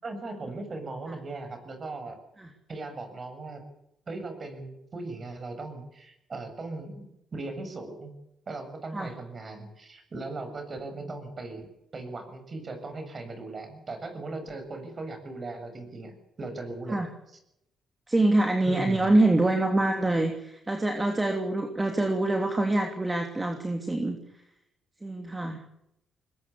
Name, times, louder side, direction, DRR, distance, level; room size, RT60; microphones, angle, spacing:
voice 1, 0.0-2.2 2.7-3.6 4.1-8.1 8.5-11.7 11.9-16.1 16.4-17.0 18.7-19.1, right 3 dB, 40° right, 7 dB, 7.5 m, -38 dB
voice 2, 18.1-24.2 25.0-25.6, right 2 dB, 15° right, 4 dB, 3.0 m, -25 dB
21.0 x 21.0 x 8.6 m, 0.82 s
cardioid pair, 90°, 0 cm